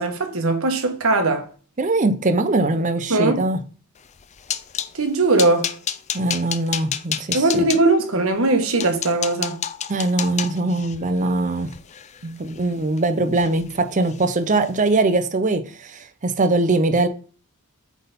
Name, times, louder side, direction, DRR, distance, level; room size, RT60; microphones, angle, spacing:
voice 1, 0.0-1.5 3.1-3.4 4.9-5.7 7.3-9.6 12.2-12.4, right 2 dB, 70° right, 1.3 m, -20 dB
voice 2, 1.8-3.6 6.1-7.6 9.9-11.7 12.4-17.1, right 2 dB, 35° right, 0.6 m, -21 dB
sound 1, 4.0-4.9 5.4-7.8 8.4-8.5 8.8-13.0 13.3-13.8 14.0-14.2 14.6-14.8, left 9 dB, 30° left, 0.4 m, -30 dB
8.2 x 3.5 x 4.1 m
head